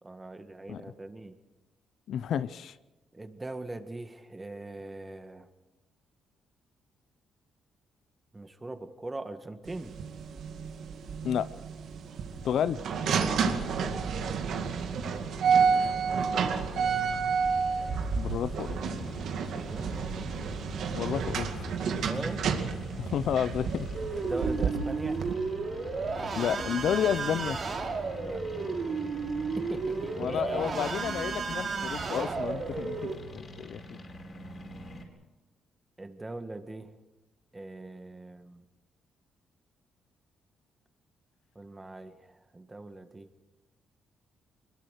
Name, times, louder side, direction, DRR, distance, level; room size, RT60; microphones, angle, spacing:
voice 1, 0.0-1.3 3.1-5.5 8.3-9.9 13.7-13.9 16.0-16.9 19.7-20.2 21.9-22.5 24.1-25.2 28.2-28.8 29.6-30.7 36.0-36.9 37.5-38.6 41.6-43.3, right 2 dB, 20° right, 8 dB, 1.9 m, -41 dB
voice 2, 2.1-2.7 11.2-11.5 12.4-12.8 16.7-17.3 18.1-18.8 20.9-21.7 23.0-23.9 26.3-27.6 30.2-34.0, left 9 dB, 70° left, 15 dB, 0.7 m, -31 dB
sound 1, 9.6-25.3, right 6 dB, 70° right, 2.3 m, -30 dB
sound 2, 17.4-35.0, left 1 dB, 40° left, 4.7 m, -43 dB
sound 3, 23.9-33.1, right 4 dB, 50° right, 3.2 m, -33 dB
23.0 x 21.0 x 6.6 m, 1.1 s
cardioid pair, 90°, 0 cm